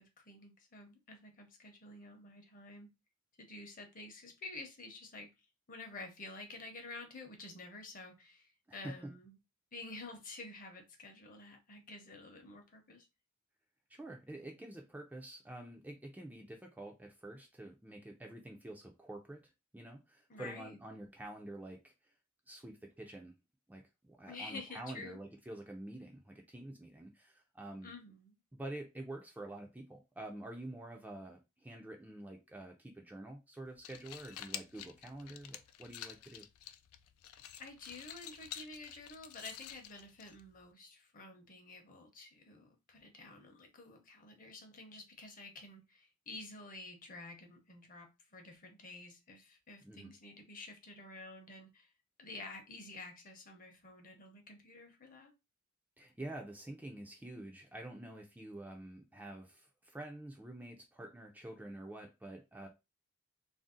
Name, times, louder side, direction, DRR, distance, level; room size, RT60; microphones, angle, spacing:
voice 1, 0.0-2.9 3.4-5.3 5.7-9.4 9.7-13.1 20.3-20.8 24.3-25.2 27.8-28.4 37.6-51.9 52.2-55.3, left 2 dB, 40° left, 0.8 m, -50 dB
voice 2, 8.7-9.1 13.9-21.9 22.5-23.3 23.7-27.9 28.5-36.5 49.8-50.1 56.0-62.7, right 1 dB, 10° right, 0.4 m, -48 dB
sound 1, 33.7-40.7, left 11 dB, 80° left, 0.3 m, -50 dB
2.5 x 2.0 x 3.7 m
head